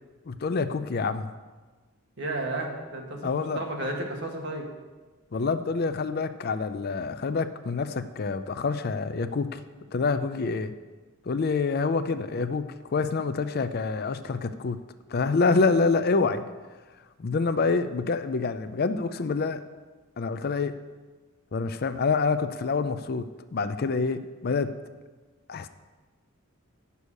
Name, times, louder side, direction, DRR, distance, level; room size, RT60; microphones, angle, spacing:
voice 1, 0.3-1.3 3.2-3.6 5.3-9.6 9.9-10.7 11.3-14.8 15.1-16.4 17.2-19.6 20.2-20.7 21.5-24.7 25.5-25.7, left 4 dB, 45° left, 11 dB, 0.4 m, -27 dB
voice 2, 2.2-4.7, right 2 dB, 55° right, 1 dB, 1.7 m, -33 dB
9.9 x 6.8 x 6.4 m, 1.3 s
head